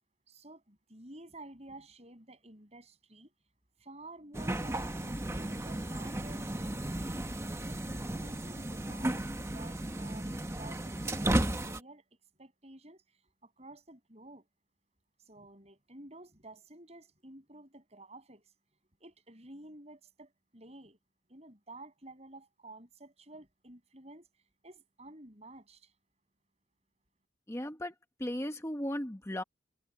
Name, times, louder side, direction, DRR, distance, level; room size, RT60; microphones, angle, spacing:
voice 1, 0.3-3.3 3.8-6.9 7.6-12.0 12.4-13.0 13.4-14.5 15.3-18.5 19.0-21.0 21.3-24.3 24.6-25.9, right 2 dB, 35° right, 7.2 m, -52 dB
sound 1, 4.3-11.8, right 1 dB, 15° right, 0.9 m, -34 dB
voice 2, 27.5-27.9 28.2-29.4, left 1 dB, 15° left, 1.0 m, -36 dB
head